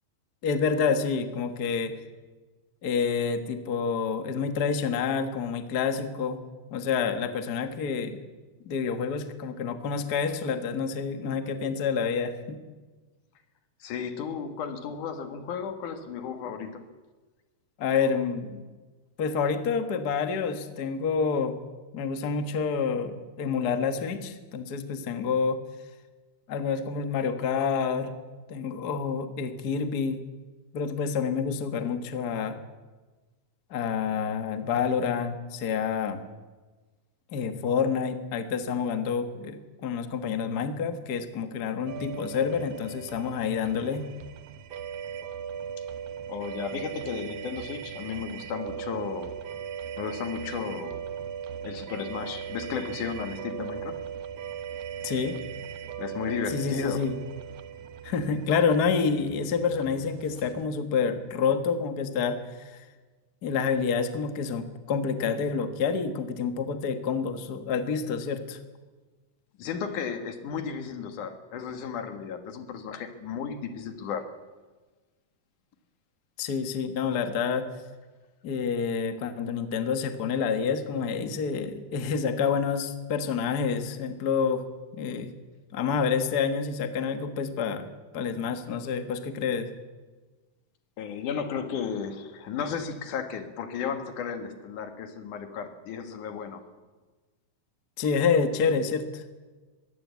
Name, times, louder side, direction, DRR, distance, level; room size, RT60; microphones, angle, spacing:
voice 1, 0.4-2.0 2.8-6.4 6.7-8.2 8.6-12.6 17.8-18.7 19.2-21.5 21.9-25.6 26.5-28.1 28.5-30.2 30.7-32.6 33.7-36.2 37.3-44.1 55.0-55.4 56.5-57.2 58.0-62.8 63.4-68.6 76.4-77.7 78.4-84.6 84.9-85.3 85.7-87.9 88.1-89.7 98.0-99.2, left 6 dB, 85° left, 8 dB, 0.8 m, -28 dB
voice 2, 13.8-16.9 46.3-49.3 50.0-51.0 51.6-54.0 56.0-57.1 69.6-74.3 91.0-96.6, left 7 dB, 60° left, 7 dB, 2.8 m, -34 dB
sound 1, 41.9-60.6, right 8 dB, 70° right, 2.0 m, -39 dB
22.0 x 16.0 x 8.4 m, 1.3 s
omnidirectional pair, 4.3 m